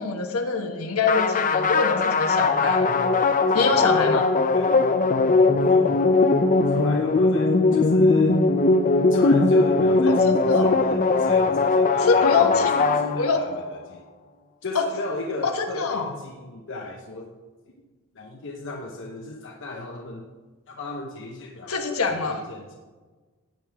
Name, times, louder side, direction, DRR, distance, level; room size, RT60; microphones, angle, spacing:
voice 1, 0.0-2.9 3.5-4.3 10.1-10.7 12.0-12.8 13.2-13.5 14.7-14.9 15.4-16.1 21.7-22.4, left 4 dB, 75° left, 4 dB, 1.4 m, -24 dB
sound 1, 1.1-13.6, left 3 dB, 40° left, 0.6 m, -20 dB
voice 2, 2.5-4.0 4.5-4.9 5.2-6.2 6.7-8.4 9.1-14.0 14.6-17.4 18.1-20.3 20.7-22.8, left 2 dB, 60° left, 1 dB, 1.0 m, -36 dB
16.0 x 9.0 x 3.6 m, 1.3 s
head